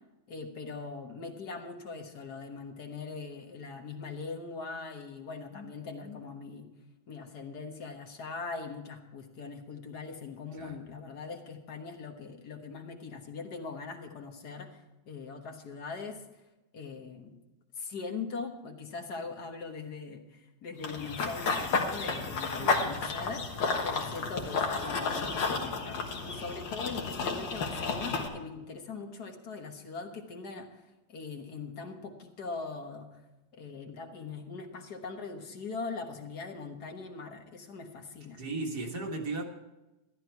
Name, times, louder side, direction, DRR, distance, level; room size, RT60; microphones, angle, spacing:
voice 1, 0.3-6.7 7.1-16.2 16.7-17.4 17.8-33.2 33.5-38.4, left 4 dB, 60° left, 4 dB, 1.9 m, -41 dB
Run / Bird vocalization bird call bird song, 20.8-28.3, left 4 dB, 80° left, 2.2 m, -32 dB
voice 2, 22.5-23.1 38.4-39.4, right 3 dB, 60° right, 1 dB, 2.2 m, -36 dB
13.5 x 11.5 x 4.6 m, 1.0 s
omnidirectional pair, 2.0 m